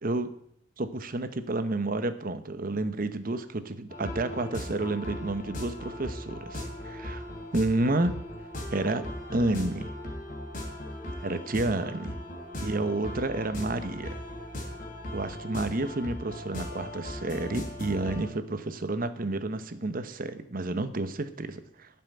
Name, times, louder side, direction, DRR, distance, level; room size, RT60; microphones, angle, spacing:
voice 1, 0.8-7.2 7.5-8.1 8.7-9.9 11.2-12.2 12.6-14.2 15.1-21.9, right 2 dB, 50° right, 11 dB, 0.9 m, -30 dB
sound 1, 3.9-18.3, left 1 dB, 45° left, 3.1 m, -38 dB
12.0 x 5.6 x 9.0 m, 0.70 s
head